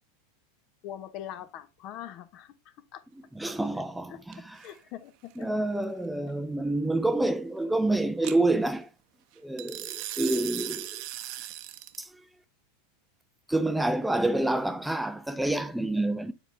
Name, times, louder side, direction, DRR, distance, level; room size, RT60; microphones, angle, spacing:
voice 1, 0.8-2.5 2.9-3.0 4.1-4.2 4.6-5.4, left 11 dB, 50° left, 0.8 m, -42 dB
voice 2, 3.3-4.6 5.4-8.9 9.4-10.9 12.0-12.1 13.5-16.3, right 2 dB, 5° right, 0.5 m, -28 dB
sound 1, 4.3-4.7 8.2-8.4 9.6-12.0, right 14 dB, 55° right, 0.8 m, -37 dB
7.2 x 4.1 x 3.3 m
hypercardioid pair, 100°, 0 cm